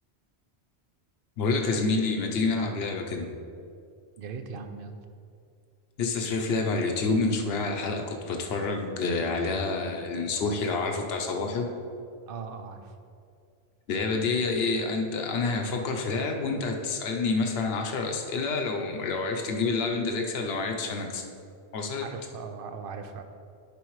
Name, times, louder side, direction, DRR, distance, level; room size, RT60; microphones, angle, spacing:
voice 1, 1.4-3.3 6.0-11.7 13.9-21.2 21.7-22.1, left 3 dB, 70° left, 3 dB, 1.0 m, -28 dB
voice 2, 4.2-5.0 12.3-13.0 22.0-23.2, right 5 dB, 60° right, 7 dB, 0.7 m, -39 dB
10.0 x 5.4 x 3.1 m, 2.3 s
omnidirectional pair, 1.1 m